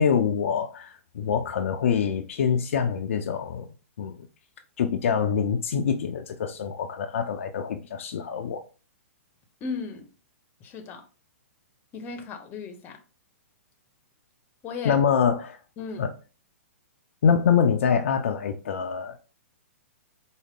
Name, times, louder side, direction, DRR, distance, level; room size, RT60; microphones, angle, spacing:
voice 1, 0.0-3.7 4.0-4.3 4.8-8.6 14.8-15.6 16.0-16.1 17.2-19.2, left 7 dB, 65° left, 0.5 m, -25 dB
voice 2, 9.6-10.1 10.6-11.1 11.9-13.0 14.6-15.0 15.8-16.1, left 5 dB, 30° left, 0.8 m, -36 dB
4.8 x 2.0 x 3.6 m
hypercardioid pair, 120°, 8 cm